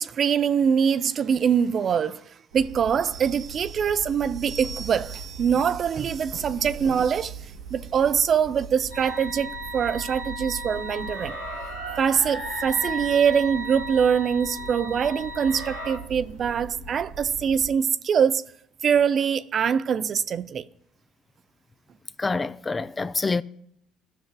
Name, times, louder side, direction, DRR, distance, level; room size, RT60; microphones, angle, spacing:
voice 1, 0.0-2.3 2.5-7.4 7.7-11.4 12.0-18.4 18.8-20.7, right 7 dB, 45° right, 0.4 m, -23 dB
sound 1, 2.5-17.7, right 4 dB, 80° right, 1.0 m, -41 dB
sound 2, 8.9-16.0, equal, 85° left, 3.3 m, -35 dB
voice 2, 22.2-23.4, left 3 dB, 25° left, 0.3 m, -26 dB
15.5 x 6.0 x 2.3 m
hypercardioid pair, 60°, 0 cm